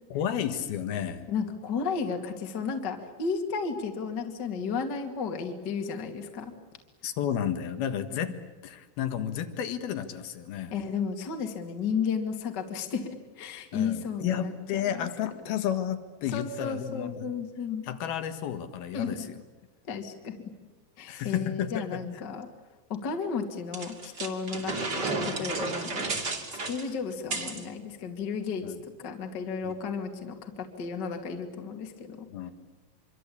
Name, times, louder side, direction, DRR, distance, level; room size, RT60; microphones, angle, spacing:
voice 1, 0.1-1.3 7.0-8.3 8.6-10.7 13.7-17.3 17.8-19.3 21.1-22.0 28.6-28.8 29.6-29.7 32.3-32.5, left 9 dB, 65° left, 9 dB, 3.2 m, -32 dB
voice 2, 1.3-6.5 8.3-8.4 10.7-15.1 16.3-17.9 18.9-19.2 19.9-20.4 21.0-22.5 22.9-26.2 26.6-32.3, left 5 dB, 30° left, 4 dB, 2.1 m, -33 dB
sound 1, 23.7-27.6, right 3 dB, 30° right, 2.8 m, -32 dB
26.0 x 25.0 x 8.6 m, 1.2 s
omnidirectional pair, 5.2 m